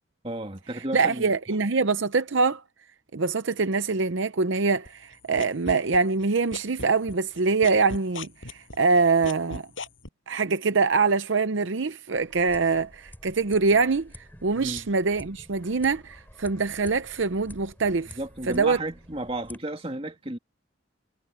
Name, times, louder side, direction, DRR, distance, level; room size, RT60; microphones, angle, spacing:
voice 1, 0.2-1.3 14.5-14.9 18.1-20.4, right 1 dB, 25° right, 2.4 m, -33 dB
voice 2, 0.9-2.6 3.1-9.7 10.3-18.2 18.5-18.8, right 4 dB, 65° right, 0.7 m, -24 dB
sound 1, 4.8-6.2 6.5-10.1, left 3 dB, 70° left, 7.8 m, -37 dB
sound 2, 12.1-19.6, left 1 dB, 10° left, 6.6 m, -49 dB
head